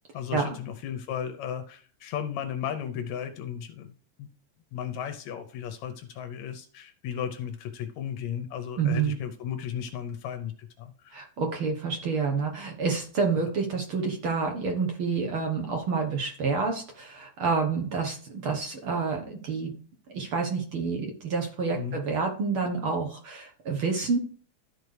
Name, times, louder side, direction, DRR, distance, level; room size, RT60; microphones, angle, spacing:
voice 1, 0.1-3.9 4.2-4.3 4.7-11.2 21.7-22.0, left 9 dB, 75° left, 8 dB, 1.7 m, -35 dB
voice 2, 8.8-9.2 11.1-19.7 20.1-24.2, right 5 dB, 60° right, 2 dB, 1.4 m, -28 dB
13.5 x 4.6 x 3.3 m, 0.44 s
omnidirectional pair, 4.0 m